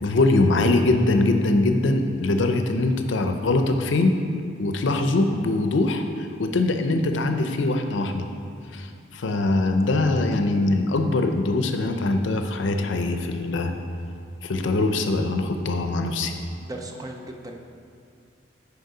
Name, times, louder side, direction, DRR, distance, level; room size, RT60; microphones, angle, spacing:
voice 1, 0.0-4.2 4.6-8.3 8.7-13.7 14.4-16.3, left 2 dB, 70° left, 6 dB, 0.5 m, -22 dB
voice 2, 16.6-17.6, right 1 dB, 20° right, 2 dB, 0.5 m, -37 dB
6.5 x 4.9 x 4.8 m, 2.3 s
head